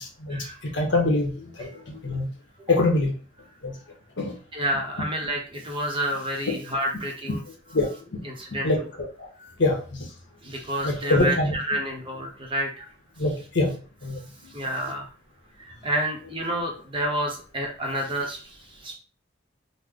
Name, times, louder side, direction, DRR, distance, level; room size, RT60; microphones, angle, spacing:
voice 1, 0.0-2.3 2.7-3.1 3.6-3.7 4.2-4.3 7.3-7.4 7.7-8.2 8.6-8.8 9.2-9.3 9.6-10.1 10.8-11.5 13.2-13.7 14.0-14.2, left 2 dB, 65° left, 1 dB, 0.9 m, -24 dB
voice 2, 4.5-7.4 8.2-8.9 9.4-9.5 10.4-12.9 14.5-15.1 15.6-18.9, right 1 dB, 25° right, 0 dB, 0.7 m, -29 dB
3.2 x 2.0 x 3.6 m, 0.38 s
head